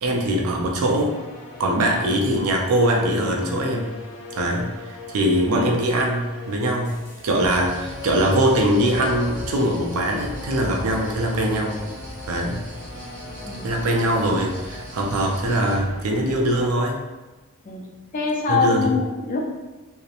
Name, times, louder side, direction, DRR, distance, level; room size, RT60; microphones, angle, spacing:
voice 1, 0.0-1.2 1.6-3.9 4.3-11.8 12.3-12.6 13.6-17.0 18.5-18.9, right 1 dB, 75° right, 1 dB, 0.4 m, -22 dB
sound 1, 0.8-16.7, left 3 dB, 85° left, 0.6 m, -39 dB
sound 2, 7.4-15.8, right 1 dB, 35° right, 0.7 m, -39 dB
voice 2, 17.7-19.4, left 4 dB, 35° left, -1 dB, 0.4 m, -24 dB
2.7 x 2.0 x 2.4 m, 1.1 s
head